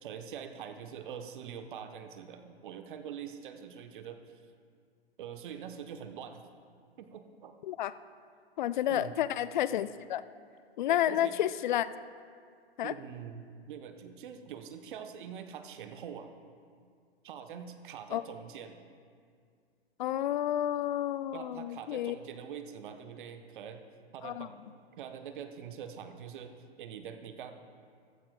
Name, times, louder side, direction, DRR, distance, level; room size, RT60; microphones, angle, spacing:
voice 1, 0.0-4.4 5.2-6.4 7.0-7.6 8.9-9.2 10.9-11.4 12.8-16.3 17.2-18.8 21.3-23.8 24.1-24.5 25.0-26.5 26.8-27.5, right 8 dB, 55° right, 7 dB, 0.9 m, -44 dB
voice 2, 8.6-10.2 10.8-11.9 12.8-12.9 18.1-18.2 20.0-22.2 24.2-24.5, left 12 dB, 50° left, 15 dB, 0.4 m, -30 dB
14.5 x 14.0 x 2.2 m, 2.2 s
figure-of-eight pair, 115°, 31 cm